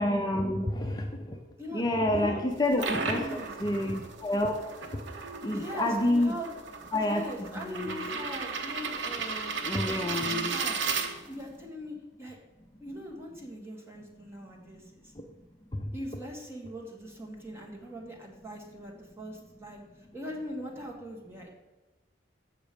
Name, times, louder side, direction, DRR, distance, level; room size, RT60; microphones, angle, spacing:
voice 1, 0.0-1.4 1.7-4.6 5.4-6.4 6.9-7.2 7.6-8.2 9.7-10.6 15.7-15.8, left 1 dB, 20° left, 2 dB, 0.6 m, -29 dB
sound 1, 2.5-11.5, right 5 dB, 70° right, 0.9 m, -35 dB
voice 2, 2.8-3.5 5.5-6.5 6.9-9.6 9.9-12.4 12.8-15.1 15.9-21.5, equal, 15° right, -1 dB, 1.5 m, -41 dB
7.2 x 6.1 x 5.1 m, 1.1 s
head